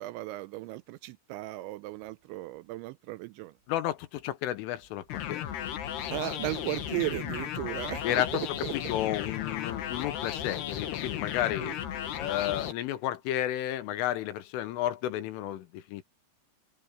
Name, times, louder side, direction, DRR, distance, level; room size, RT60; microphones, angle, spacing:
voice 1, 0.0-3.5 6.1-8.8 11.6-11.8, right 18 dB, 85° right, 2.7 m, -36 dB
sound 1, 2.0-2.8 3.4-4.5 4.8-12.4, right 4 dB, 65° right, 8.5 m, -62 dB
voice 2, 3.7-5.5 8.0-8.4 8.7-11.8 12.2-16.0, left 13 dB, 80° left, 3.7 m, -32 dB
sound 2, 5.1-12.7, left 11 dB, 65° left, 3.3 m, -35 dB
open air
omnidirectional pair, 5.8 m